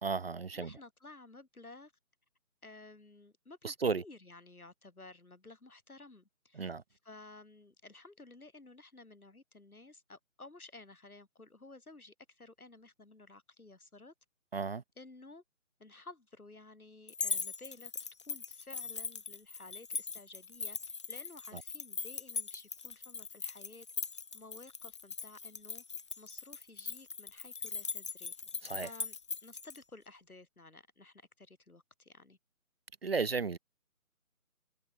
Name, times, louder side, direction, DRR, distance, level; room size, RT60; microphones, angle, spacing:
voice 1, 0.0-0.7 3.6-4.0 6.6-6.8 14.5-14.8 28.6-28.9 33.0-33.6, right 4 dB, 45° right, 0.9 m, -33 dB
voice 2, 0.5-1.9 2.6-14.1 15.0-15.4 15.8-17.9 18.3-23.9 24.3-25.8 26.2-28.3 28.7-29.2 29.4-32.4, left 2 dB, 80° left, 4.7 m, -54 dB
sound 1, 17.1-29.8, left 5 dB, 20° left, 0.9 m, -40 dB
figure-of-eight pair, 155°, 43 cm